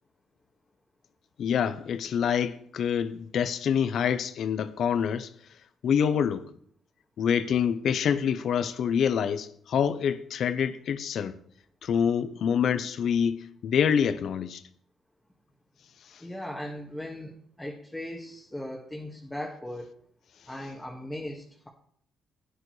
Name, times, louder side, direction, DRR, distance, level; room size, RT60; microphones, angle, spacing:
voice 1, 1.4-5.3 5.8-6.5 7.2-11.4 11.8-14.6, left 7 dB, 65° left, 0.7 m, -26 dB
voice 2, 16.2-19.9 20.5-21.7, left 1 dB, 5° left, 1.6 m, -38 dB
11.0 x 9.9 x 3.2 m
cardioid pair, 90°, 0 cm